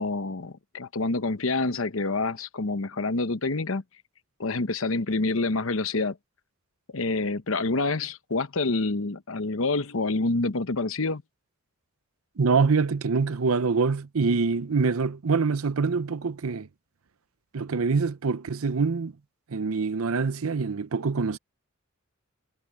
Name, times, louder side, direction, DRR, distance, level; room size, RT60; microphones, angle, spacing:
voice 1, 0.0-3.8 4.4-6.2 6.9-11.2, left 3 dB, 70° left, 1.0 m, -27 dB
voice 2, 12.4-16.7 17.5-19.1 19.5-21.4, right 4 dB, 80° right, 0.7 m, -25 dB
head